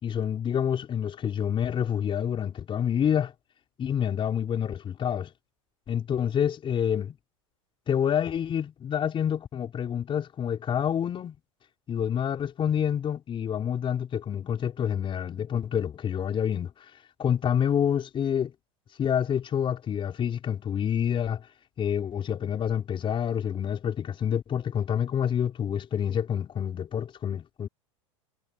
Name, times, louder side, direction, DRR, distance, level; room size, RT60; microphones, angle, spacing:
voice 1, 0.0-3.3 3.8-5.3 5.9-7.1 7.9-11.3 11.9-16.7 17.2-18.5 19.0-21.4 21.8-27.7, left 8 dB, 30° left, 5.1 m, -27 dB
hypercardioid pair, 100°, 16 cm